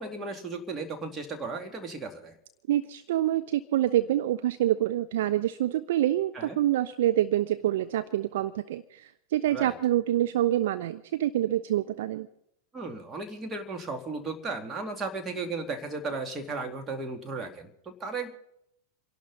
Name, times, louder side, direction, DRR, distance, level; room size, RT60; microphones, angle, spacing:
voice 1, 0.0-2.3 6.3-6.6 9.5-9.8 12.7-18.3, right 3 dB, 20° right, 4 dB, 2.6 m, -35 dB
voice 2, 2.7-12.3, right 13 dB, 55° right, 11 dB, 0.7 m, -26 dB
28.0 x 11.5 x 4.1 m, 0.75 s
figure-of-eight pair, 90°, 0 cm